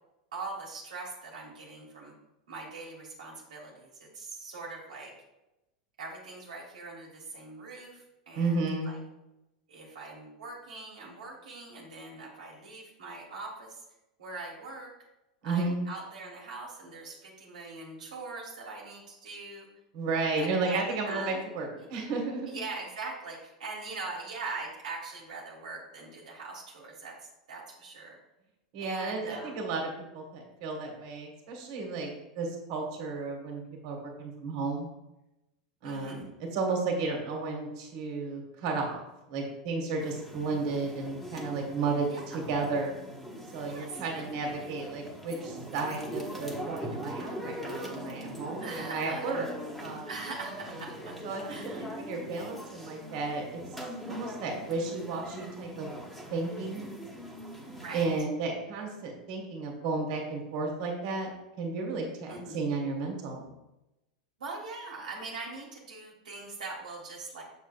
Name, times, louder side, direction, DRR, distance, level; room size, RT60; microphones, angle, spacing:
voice 1, 0.3-2.1 2.5-5.1 6.0-9.0 9.7-13.8 14.2-14.9 15.4-19.7 20.4-21.5 21.7-21.9 22.5-28.2 28.8-29.6 35.8-36.4 42.1-42.4 43.6-44.7 48.6-49.3 50.1-51.2 51.5-51.9 57.8-58.1 62.3-62.7 64.4-67.4, right 3 dB, 80° right, -3 dB, 1.5 m, -42 dB
voice 2, 8.3-8.9 15.4-15.8 19.9-22.6 28.7-34.9 35.8-42.9 43.5-49.5 49.8-50.1 51.2-53.6 54.1-55.9 56.3-56.9 57.9-61.3 61.6-63.5, right 3 dB, 60° right, 1 dB, 1.5 m, -33 dB
sound 1, 40.0-58.2, equal, ahead, 1.2 m, -41 dB
6.5 x 6.5 x 2.4 m, 0.94 s
hypercardioid pair, 95°, 4 cm